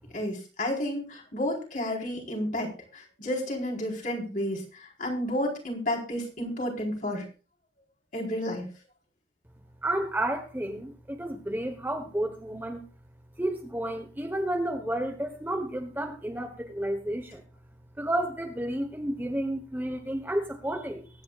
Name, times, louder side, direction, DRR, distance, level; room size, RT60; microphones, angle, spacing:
voice 1, 0.1-7.3 8.1-8.7, left 1 dB, 40° left, -1 dB, 4.3 m, -31 dB
voice 2, 9.8-12.8 13.4-17.4 18.0-21.1, right 1 dB, 10° right, 4 dB, 1.1 m, -31 dB
23.0 x 9.6 x 2.4 m, 0.34 s
head